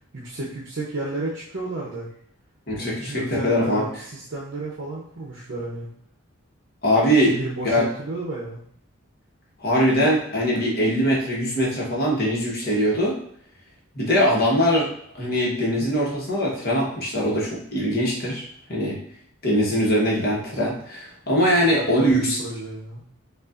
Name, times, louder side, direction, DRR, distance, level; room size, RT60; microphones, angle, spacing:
voice 1, 0.0-2.1 2.8-5.9 7.1-8.6 21.8-23.0, right 2 dB, 55° right, -5 dB, 0.7 m, -32 dB
voice 2, 2.7-3.8 6.8-7.3 7.6-7.8 9.6-13.2 13.9-14.9 15.1-19.0 19.4-22.4, equal, 45° left, -3 dB, 1.1 m, -22 dB
5.2 x 2.4 x 2.4 m, 0.66 s
head